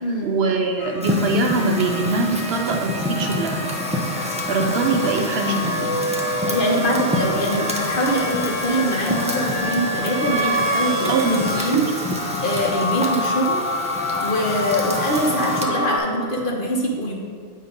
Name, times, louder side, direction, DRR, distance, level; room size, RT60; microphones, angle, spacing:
voice 1, 0.2-3.6 4.5-5.9 11.1-11.5 11.7-11.9, right 3 dB, 65° right, 3 dB, 0.8 m, -22 dB
sound 1, 0.8-16.0, left 1 dB, 75° left, 1.1 m, -27 dB
Fire, 1.0-15.7, equal, 10° right, 0.4 m, -29 dB
voice 2, 6.5-11.2 11.5-11.8 12.4-13.6 14.2-17.1, equal, 50° left, -1 dB, 1.0 m, -23 dB
8.4 x 2.8 x 5.2 m, 2.1 s
omnidirectional pair, 1.2 m